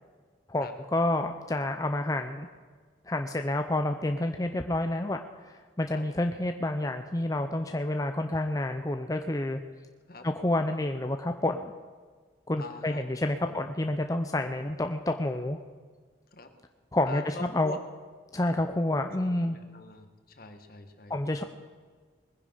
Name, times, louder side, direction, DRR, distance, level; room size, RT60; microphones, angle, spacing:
voice 1, 0.5-2.5 3.1-5.2 5.5-9.6 10.2-11.7 12.5-15.6 16.9-17.8 18.3-19.6 21.1-21.4, left 1 dB, 20° left, 6 dB, 0.6 m, -29 dB
voice 2, 12.6-13.0 13.4-13.6 16.3-16.5 17.1-17.8 19.2-21.1, left 3 dB, 50° left, 7 dB, 1.5 m, -43 dB
20.5 x 10.0 x 5.6 m, 1.5 s
head